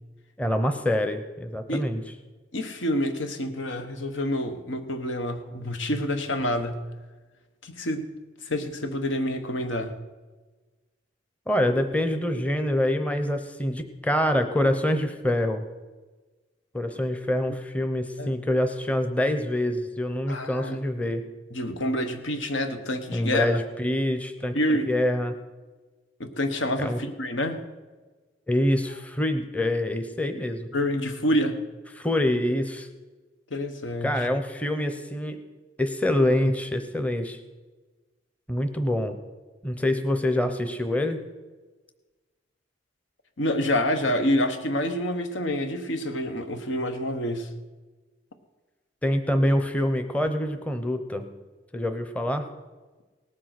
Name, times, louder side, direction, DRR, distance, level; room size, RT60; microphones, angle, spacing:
voice 1, 0.4-2.0 11.5-15.6 16.7-21.2 23.1-24.6 24.9-25.3 26.8-27.0 28.5-30.7 32.0-32.9 34.0-35.4 35.8-37.4 38.5-39.2 39.6-41.2 49.0-51.3 51.7-52.5, left 1 dB, 5° left, 8 dB, 0.7 m, -25 dB
voice 2, 2.5-6.8 7.6-8.1 8.4-9.9 18.2-18.3 20.3-20.8 21.5-23.5 24.5-24.9 26.2-27.6 30.7-31.6 33.5-34.3 43.4-47.5, left 1 dB, 90° left, 7 dB, 1.3 m, -27 dB
18.5 x 7.6 x 5.9 m, 1.3 s
head